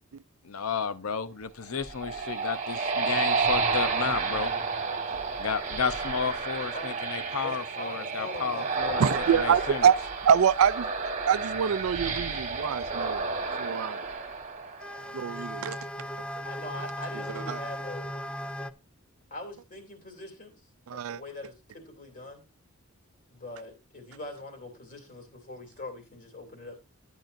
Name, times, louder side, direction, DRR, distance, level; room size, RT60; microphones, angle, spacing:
voice 1, 0.4-4.5 5.4-9.0 9.4-9.9, left 6 dB, 90° left, 0.7 m, -32 dB
sound 1, 1.6-15.2, right 4 dB, 35° right, 1.6 m, -31 dB
voice 2, 7.4-9.9 16.4-18.1 19.3-20.5 20.9-22.4 23.3-26.8, left 2 dB, 40° left, 2.9 m, -42 dB
voice 3, 9.0-10.0 10.3-10.8 11.2-13.3 13.6-14.0 15.1-15.8 17.3-17.6 20.9-21.2, right 8 dB, 80° right, 0.4 m, -25 dB
sound 2, 14.8-18.7, equal, 5° left, 0.4 m, -37 dB
11.5 x 9.0 x 2.6 m
head